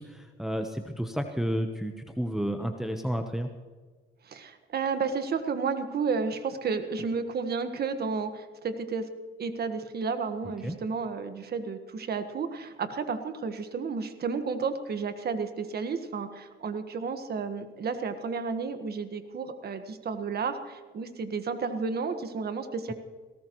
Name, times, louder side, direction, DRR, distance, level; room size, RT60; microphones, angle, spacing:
voice 1, 0.0-3.5 10.6-10.8, equal, ahead, 5 dB, 1.0 m, -31 dB
voice 2, 4.2-9.1 9.4-22.9, right 5 dB, 55° right, 8 dB, 1.6 m, -32 dB
19.5 x 17.5 x 3.1 m, 1.4 s
cardioid pair, 90°, 20 cm